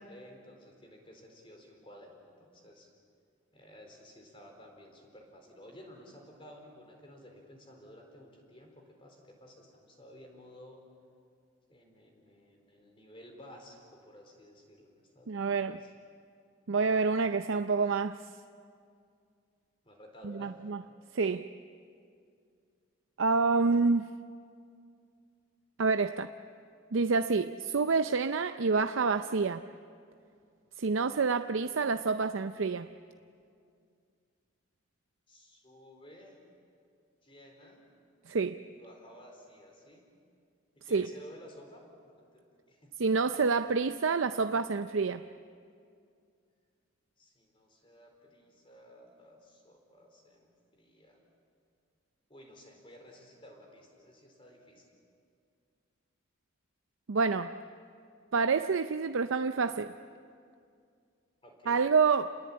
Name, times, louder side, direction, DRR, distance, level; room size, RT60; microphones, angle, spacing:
voice 1, 0.0-2.9 3.5-10.8 11.7-15.9 19.8-20.6 35.3-36.4 37.2-37.8 38.7-40.0 40.7-42.9 47.2-51.2 52.3-54.9 61.4-61.9, equal, 25° left, 4.3 m, -54 dB
voice 2, 15.3-15.8 16.7-18.3 20.2-20.8 21.1-21.5 23.2-24.1 25.8-26.3 26.9-29.6 30.8-32.9 38.3-38.6 40.9-41.1 43.0-45.2 57.1-57.6 58.3-59.9 61.7-62.4, right 4 dB, 80° right, 0.6 m, -28 dB
28.0 x 21.5 x 8.6 m
head